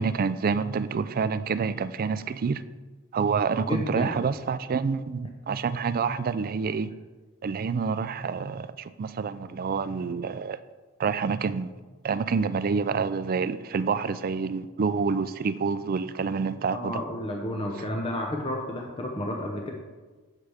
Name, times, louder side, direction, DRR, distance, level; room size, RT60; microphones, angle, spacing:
voice 1, 0.0-2.6 3.1-6.9 7.4-10.6 11.0-11.7 12.0-17.0, right 5 dB, 40° right, 14 dB, 0.4 m, -27 dB
voice 2, 3.7-4.2 16.7-19.7, left 1 dB, 25° left, 1 dB, 0.8 m, -31 dB
9.7 x 7.6 x 3.5 m, 1.3 s
head